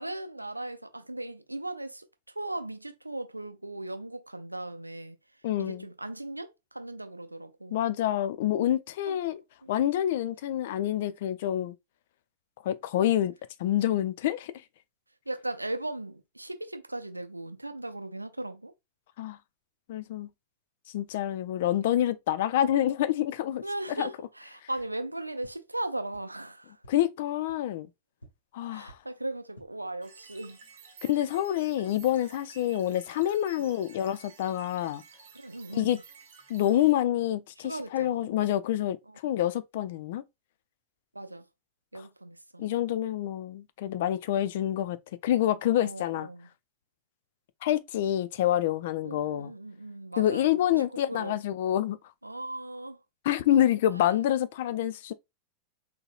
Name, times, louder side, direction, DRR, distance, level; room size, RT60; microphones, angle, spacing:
voice 1, 0.0-2.0 2.4-5.2 5.6-7.8 9.1-9.7 15.3-18.7 23.6-26.8 28.7-30.6 35.3-36.0 37.6-38.3 39.1-39.2 41.1-41.5 41.9-42.7 45.8-46.5 49.0-51.4 52.2-53.0 53.9-54.2, right 2 dB, 85° right, 0.4 m, -38 dB
voice 2, 5.4-5.9 7.7-9.4 9.7-11.8 12.6-13.3 13.6-14.5 19.2-19.4 19.9-20.3 20.9-23.6 24.0-24.1 26.9-27.9 28.5-29.0 31.0-35.0 35.7-36.0 36.5-39.0 39.2-40.2 41.9-42.0 42.6-46.3 47.6-49.5 50.2-52.0 53.2-55.1, left 12 dB, 55° left, 0.3 m, -27 dB
sound 1, 24.7-24.8 25.4-25.5 26.1-26.2 26.8-26.9 27.5-27.6 28.2-28.3 28.8-28.9 29.4-29.6, right 1 dB, 85° left, 0.9 m, -51 dB
sound 2, 30.0-36.9, right 6 dB, 60° right, 0.8 m, -53 dB
3.8 x 2.7 x 2.5 m
figure-of-eight pair, 90°, 0 cm